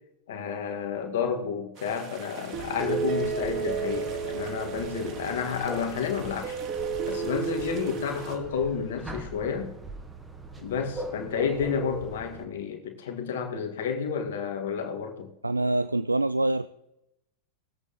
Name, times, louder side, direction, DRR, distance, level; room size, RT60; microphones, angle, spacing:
voice 1, 0.3-6.6 7.1-9.7 10.6-15.3, left 6 dB, 60° left, 2.3 m, -30 dB
sound 1, 1.8-8.3, right 6 dB, 35° right, 2.4 m, -33 dB
sound 2, 2.5-12.4, right 1 dB, 10° right, 1.5 m, -41 dB
voice 2, 15.4-16.7, right 2 dB, 85° right, 0.3 m, -25 dB
20.0 x 8.3 x 3.7 m
figure-of-eight pair, 90°, 0 cm